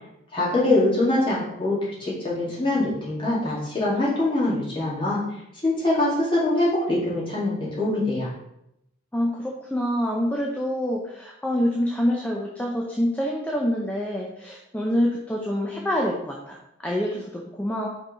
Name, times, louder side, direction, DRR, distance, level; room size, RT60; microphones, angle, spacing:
voice 1, 0.3-5.2 5.6-8.3, left 2 dB, 25° left, -7 dB, 2.2 m, -23 dB
voice 2, 9.1-17.9, equal, 5° left, -2 dB, 0.5 m, -26 dB
5.2 x 3.9 x 5.0 m, 0.83 s
head